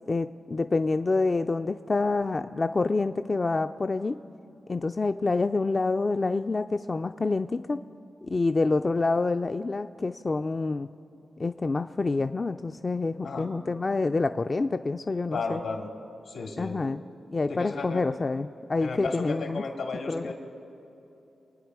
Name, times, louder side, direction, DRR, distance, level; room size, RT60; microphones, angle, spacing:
voice 1, 0.1-4.2 4.7-7.8 8.2-10.9 11.4-15.6 16.6-17.0 17.3-19.6 20.1-20.3, left 3 dB, 35° left, 8 dB, 0.4 m, -27 dB
voice 2, 15.3-15.9 16.2-16.8 17.5-18.0 18.8-20.3, left 4 dB, 80° left, 2 dB, 2.6 m, -33 dB
27.0 x 9.4 x 4.7 m, 2.9 s
cardioid pair, 90°, 0 cm